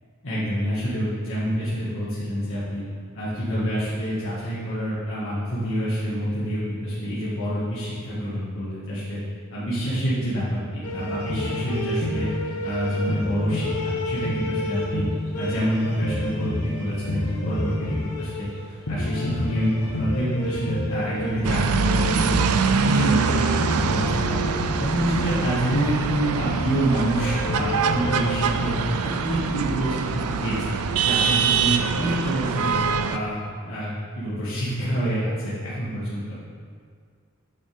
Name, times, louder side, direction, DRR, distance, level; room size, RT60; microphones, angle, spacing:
voice 1, 0.2-2.9 3.1-9.2 9.5-12.3 12.6-15.1 15.4-17.7 18.0-18.5 18.9-22.3 22.7-28.7 29.0-32.8 33.0-33.9 34.2-36.4, equal, 65° left, -10 dB, 2.0 m, -27 dB
sound 1, 10.8-28.7, left 1 dB, 85° left, 1.2 m, -30 dB
sound 2, 21.4-33.2, right 5 dB, 80° right, 0.5 m, -24 dB
8.9 x 7.1 x 3.6 m, 2.1 s
head